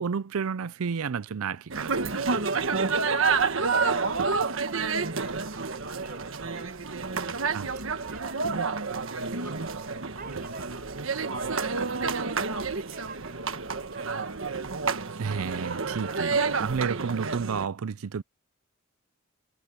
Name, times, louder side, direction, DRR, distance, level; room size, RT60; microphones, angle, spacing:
voice 1, 0.0-2.4 7.5-7.7 15.2-18.2, right 6 dB, 90° right, 0.5 m, -31 dB
sound 1, 1.7-17.7, right 4 dB, 70° right, 1.4 m, -29 dB
voice 2, 3.3-4.3 4.6-14.5, right 3 dB, 40° right, 7.8 m, -49 dB
head